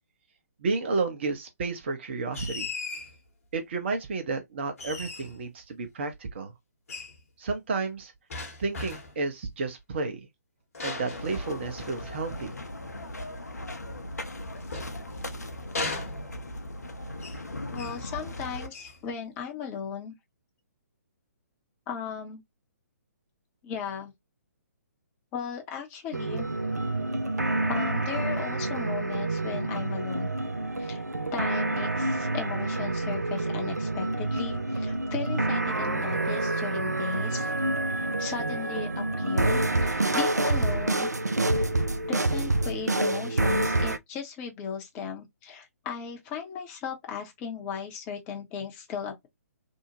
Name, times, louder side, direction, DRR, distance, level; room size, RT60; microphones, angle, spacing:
voice 1, 0.6-2.7 3.5-6.5 7.4-8.1 8.6-10.3 10.8-12.5, right 3 dB, 45° right, 0.8 m, -31 dB
sound 1, 2.3-3.2 4.8-5.5 6.9-7.2 8.3-9.2 10.7-12.0 14.2-15.3 15.7-16.6 17.2-17.5 17.7-18.1 18.7-19.0, left 3 dB, 60° left, 0.9 m, -37 dB
sound 2, 11.1-18.7, left 1 dB, 80° left, 0.6 m, -38 dB
voice 2, 17.7-20.1 21.9-22.4 23.6-24.1 25.3-26.5 27.7-30.3 30.8-31.0 31.3-37.5 38.0-41.1 42.1-49.3, left 7 dB, 20° left, 0.6 m, -36 dB
sound 3, 26.1-44.0, right 2 dB, 90° right, 0.4 m, -28 dB
2.7 x 2.1 x 2.8 m
figure-of-eight pair, 130°, 9 cm